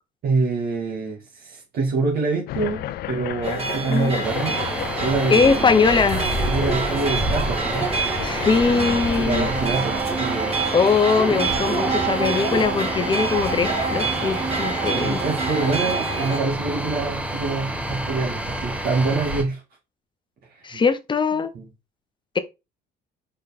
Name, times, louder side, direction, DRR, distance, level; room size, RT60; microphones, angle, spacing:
voice 1, 0.2-4.6 5.0-5.8 6.5-7.9 9.2-10.6 14.9-19.6 20.7-20.8 21.5-21.7, right 3 dB, 60° right, 2.3 m, -26 dB
sound 1, 2.5-9.6, left 13 dB, 70° left, 0.5 m, -33 dB
sound 2, 3.4-16.4, right 4 dB, 35° right, 2.4 m, -27 dB
sound 3, 4.2-19.4, right 1 dB, 5° right, 1.1 m, -29 dB
voice 2, 5.3-6.3 8.2-9.5 10.7-15.2 20.6-21.5 22.3-22.4, left 5 dB, 30° left, 1.0 m, -21 dB
5.0 x 4.6 x 4.2 m
cardioid pair, 110°, 17 cm